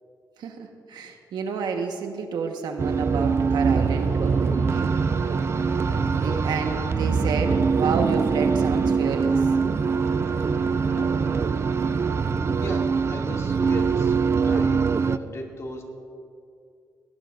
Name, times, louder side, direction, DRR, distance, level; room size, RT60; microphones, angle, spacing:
voice 1, 0.4-5.0 5.8-9.4, right 5 dB, 80° right, 4 dB, 1.4 m, -30 dB
sound 1, 2.8-15.2, right 5 dB, 40° right, 0.4 m, -23 dB
sound 2, 4.0-12.6, left 1 dB, 25° left, 1.9 m, -39 dB
voice 2, 12.6-15.8, left 1 dB, 45° left, 0 dB, 2.4 m, -37 dB
18.5 x 18.0 x 2.6 m, 2.3 s
cardioid pair, 100°, 7 cm